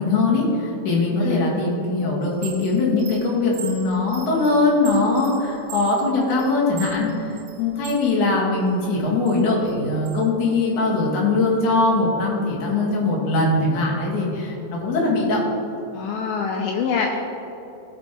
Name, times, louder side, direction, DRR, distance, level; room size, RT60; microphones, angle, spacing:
voice 1, 0.0-15.4, left 3 dB, 55° left, -5 dB, 2.5 m, -21 dB
Chime, 2.2-8.1 8.5-10.2, right 7 dB, 70° right, 2.7 m, -40 dB
voice 2, 15.9-17.2, left 5 dB, 85° left, 1 dB, 2.1 m, -25 dB
15.5 x 5.3 x 2.9 m, 3.0 s
omnidirectional pair, 4.9 m